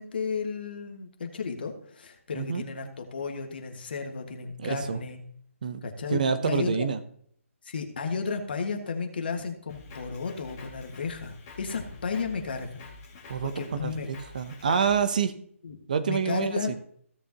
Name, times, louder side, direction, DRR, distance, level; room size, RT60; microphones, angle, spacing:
voice 1, 0.0-5.2 5.8-6.9 7.6-12.8 13.4-14.1 15.6-15.8 16.0-16.8, left 5 dB, 45° left, 4 dB, 1.7 m, -33 dB
voice 2, 4.6-5.0 5.6-5.8 6.1-7.0 13.3-13.5 13.8-15.3 15.9-16.6, right 6 dB, 35° right, 11 dB, 0.7 m, -27 dB
Drum kit, 9.7-15.0, left 3 dB, 20° left, 2.2 m, -47 dB
16.0 x 6.8 x 2.9 m, 0.63 s
hypercardioid pair, 175°, 8 cm